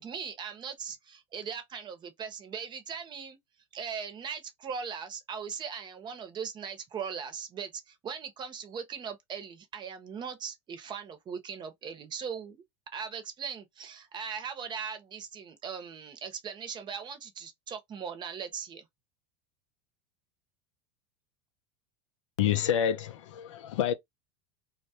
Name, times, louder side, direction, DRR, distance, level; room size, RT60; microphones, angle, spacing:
voice 1, 0.0-3.4 3.7-12.6 12.9-18.8, right 6 dB, 30° right, 0.7 m, -39 dB
voice 2, 22.4-23.9, left 10 dB, 90° left, 0.5 m, -28 dB
2.2 x 2.1 x 2.7 m
supercardioid pair, 110°, 15 cm